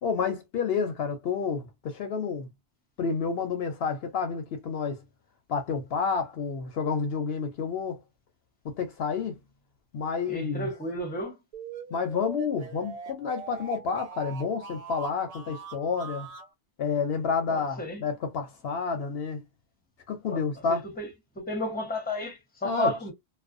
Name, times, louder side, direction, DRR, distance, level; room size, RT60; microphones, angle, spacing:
voice 1, 0.0-2.5 3.0-5.0 5.5-8.0 8.6-9.4 9.9-10.7 11.9-16.3 16.8-19.4 20.1-20.8 22.6-22.9, left 5 dB, 70° left, 0.8 m, -29 dB
voice 2, 10.3-11.3 17.5-18.0 20.3-20.4 20.7-21.1 21.4-23.1, left 1 dB, 10° left, 0.8 m, -32 dB
sound 1, 11.5-16.5, right 5 dB, 45° right, 0.6 m, -42 dB
2.4 x 2.3 x 2.5 m
omnidirectional pair, 1.1 m